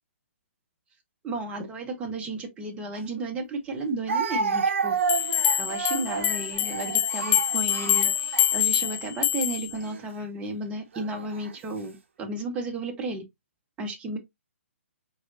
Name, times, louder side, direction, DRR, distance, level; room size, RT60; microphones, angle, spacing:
voice 1, 1.2-13.2 13.8-14.2, right 2 dB, 15° right, 0.9 m, -33 dB
Speech, 2.9-3.0 4.1-9.0 9.7-10.0 10.9-11.5, right 5 dB, 60° right, 0.7 m, -30 dB
sound 1, 5.1-9.7, left 12 dB, 30° left, 0.4 m, -25 dB
4.4 x 3.2 x 2.7 m
figure-of-eight pair, 135°, 7 cm